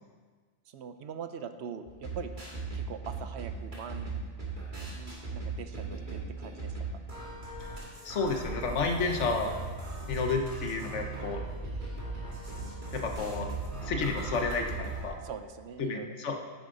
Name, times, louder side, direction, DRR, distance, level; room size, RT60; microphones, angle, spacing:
voice 1, 0.7-2.3 2.7-4.2 5.0-6.8 15.2-16.1, right 7 dB, 70° right, 9 dB, 0.9 m, -42 dB
sound 1, 1.9-15.1, right 3 dB, 45° right, 2.1 m, -38 dB
voice 2, 8.0-9.6 10.1-11.4 12.9-13.5 13.8-15.2 15.8-16.4, left 4 dB, 80° left, 4 dB, 1.3 m, -31 dB
10.0 x 9.0 x 3.8 m, 1.5 s
omnidirectional pair, 1.2 m